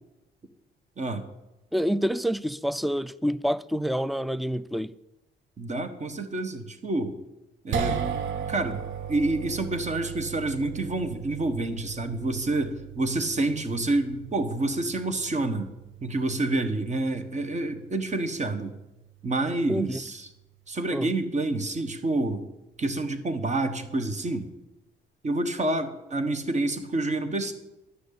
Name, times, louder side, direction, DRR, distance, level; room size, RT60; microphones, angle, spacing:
voice 1, 1.0-1.3 5.6-7.2 7.6-8.0 8.5-8.8 9.1-15.7 16.0-18.8 19.2-20.3 20.7-22.5 22.8-24.5 25.2-27.5, right 2 dB, 35° right, 1.5 m, -28 dB
voice 2, 1.7-4.9 19.7-20.0 20.9-21.1, equal, ahead, 0.4 m, -27 dB
sound 1, 7.7-20.0, right 7 dB, 80° right, 1.0 m, -37 dB
11.5 x 6.4 x 8.4 m
cardioid pair, 90°, 20 cm